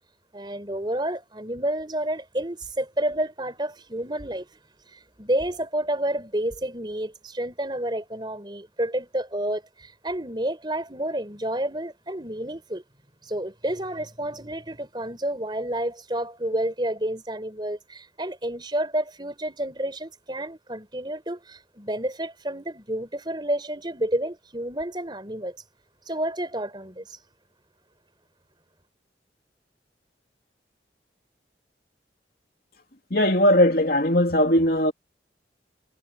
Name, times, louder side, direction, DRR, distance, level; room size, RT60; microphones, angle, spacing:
voice 1, 0.3-4.5 4.9-12.8 13.2-25.6 26.1-27.2, right 1 dB, 25° right, 4.6 m, -30 dB
voice 2, 33.1-34.9, left 1 dB, 55° left, 3.0 m, -19 dB
head